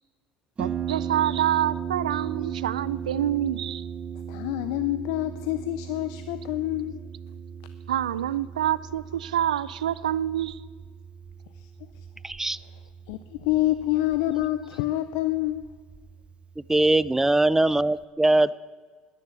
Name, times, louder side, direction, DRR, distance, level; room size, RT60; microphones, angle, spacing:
Harp, 0.6-18.0, right 8 dB, 30° right, 1.0 m, -37 dB
voice 1, 0.6-3.9 7.9-10.6, right 11 dB, 90° right, 18 dB, 0.4 m, -27 dB
voice 2, 4.3-7.0 11.6-11.7 13.1-15.7, left 15 dB, 70° left, 12 dB, 0.6 m, -27 dB
voice 3, 12.2-12.6 16.7-18.6, right 2 dB, 10° right, 19 dB, 0.5 m, -21 dB
13.0 x 9.9 x 8.1 m, 1.5 s
hypercardioid pair, 70°, 4 cm